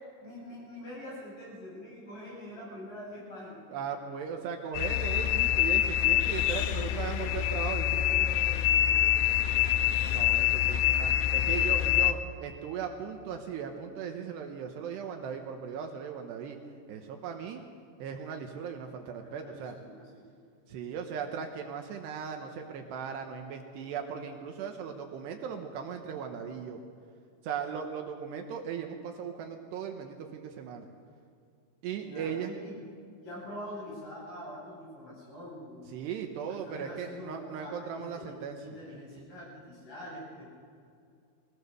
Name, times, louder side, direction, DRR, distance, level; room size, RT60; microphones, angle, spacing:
voice 1, 0.2-3.6 6.7-7.3 7.7-9.9 11.6-12.0 19.2-20.4 32.0-32.7 33.2-35.9 36.4-38.4 38.6-40.4, left 1 dB, 45° left, -5 dB, 9.4 m, -45 dB
voice 2, 3.7-8.0 10.0-16.6 16.9-17.6 18.0-19.8 20.7-26.8 27.4-30.9 31.8-32.5 35.9-38.6, right 7 dB, 75° right, 4 dB, 3.0 m, -38 dB
sound 1, 4.7-12.1, left 12 dB, 85° left, 3.2 m, -26 dB
22.5 x 17.5 x 6.8 m, 2.3 s
omnidirectional pair, 5.3 m